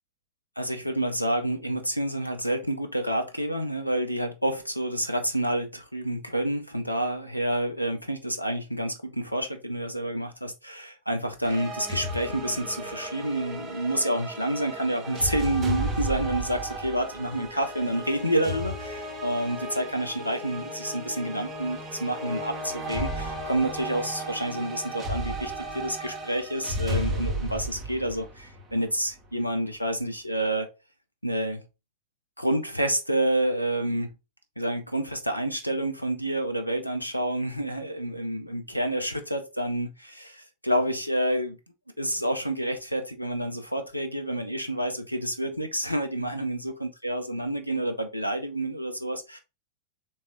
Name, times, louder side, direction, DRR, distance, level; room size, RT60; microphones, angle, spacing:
voice 1, 0.6-30.7 31.2-31.6 32.4-34.1 34.6-41.6 42.0-49.4, right 1 dB, 90° left, 0.5 m, -29 dB
sound 1, 11.4-29.1, equal, 25° right, 1.5 m, -34 dB
4.1 x 3.1 x 2.3 m
figure-of-eight pair, 90°, 0 cm